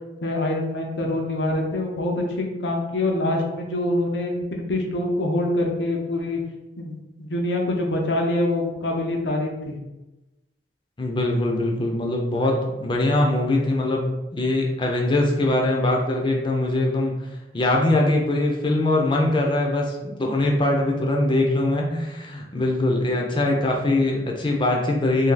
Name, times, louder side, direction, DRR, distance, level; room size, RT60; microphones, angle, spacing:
voice 1, 0.2-6.4 6.8-9.8 23.3-23.7 24.0-24.2, left 1 dB, 80° left, 1 dB, 0.7 m, -25 dB
voice 2, 11.0-14.1 14.3-17.1 17.5-25.3, left 2 dB, 30° left, 0 dB, 0.6 m, -22 dB
2.8 x 2.7 x 3.8 m, 1.0 s
head